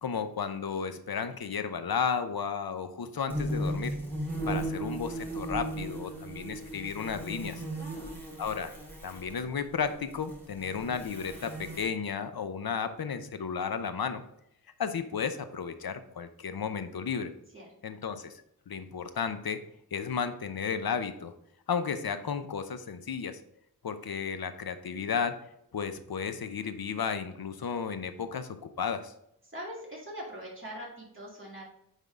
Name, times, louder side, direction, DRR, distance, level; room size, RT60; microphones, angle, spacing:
voice 1, 0.0-3.9 4.5-7.6 8.4-8.7 9.0-14.2 14.8-17.3 17.8-19.6 19.9-21.3 21.7-23.4 23.8-25.3 25.7-29.1, left 6 dB, 70° left, 9 dB, 0.7 m, -33 dB
sound 1, 3.3-9.4 10.0-11.8, right 1 dB, 5° left, 2.0 m, -36 dB
voice 2, 7.1-8.2 17.5-18.0 29.4-31.6, equal, 30° right, -4 dB, 2.4 m, -43 dB
9.2 x 3.6 x 3.6 m, 0.76 s
wide cardioid pair, 80°, 37 cm